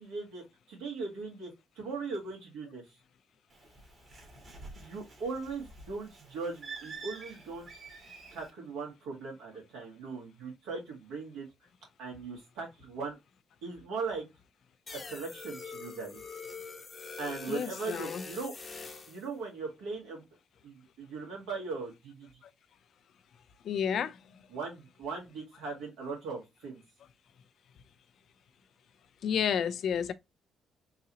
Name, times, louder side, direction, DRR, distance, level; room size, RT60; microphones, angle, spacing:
voice 1, 0.0-2.8 4.8-7.7 8.3-11.5 12.0-13.2 13.6-14.3 14.9-16.2 17.2-18.6 19.1-20.2 20.6-22.3 24.5-26.8, right 4 dB, 85° right, 1.9 m, -39 dB
Bird, 3.5-8.5, right 4 dB, 55° right, 1.7 m, -48 dB
sound 1, 14.9-19.2, left 4 dB, 40° left, 0.9 m, -44 dB
voice 2, 17.5-18.2 23.6-24.2 29.2-30.1, left 8 dB, 65° left, 0.4 m, -30 dB
3.9 x 2.7 x 3.0 m
supercardioid pair, 60°, 0 cm